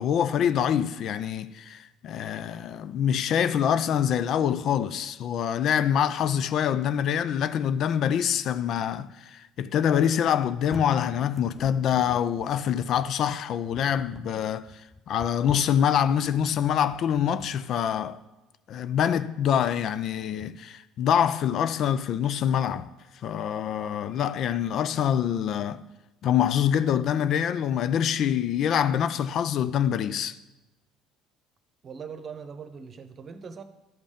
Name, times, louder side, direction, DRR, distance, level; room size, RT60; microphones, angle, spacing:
voice 1, 0.0-14.7 15.1-18.2 18.7-22.9 23.2-25.8 26.2-30.4, left 9 dB, 55° left, 0.4 m, -25 dB
sound 1, 10.6-17.5, left 2 dB, 5° left, 0.6 m, -45 dB
voice 2, 31.8-33.6, right 6 dB, 40° right, 0.9 m, -41 dB
12.0 x 5.3 x 5.1 m
hypercardioid pair, 75°, 0 cm